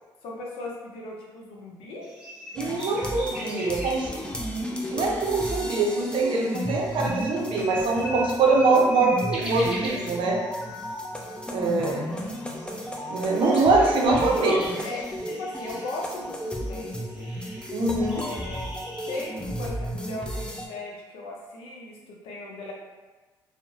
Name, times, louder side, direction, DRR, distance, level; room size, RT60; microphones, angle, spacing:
voice 1, 0.2-2.1 11.8-12.6 13.8-17.3 18.2-18.8 19.1-22.7, left 2 dB, 80° left, -2 dB, 0.6 m, -37 dB
sound 1, 2.0-11.4 11.7-11.8 12.0-19.2, right 1 dB, 10° right, 1.2 m, -41 dB
sound 2, 2.5-20.7, equal, 10° left, 0.5 m, -34 dB
voice 2, 2.6-4.1 4.8-10.4 11.5-12.0 13.1-14.6 17.7-18.2, right 3 dB, 65° right, -1 dB, 0.5 m, -23 dB
2.8 x 2.1 x 2.7 m, 1.3 s
supercardioid pair, 65°, 9 cm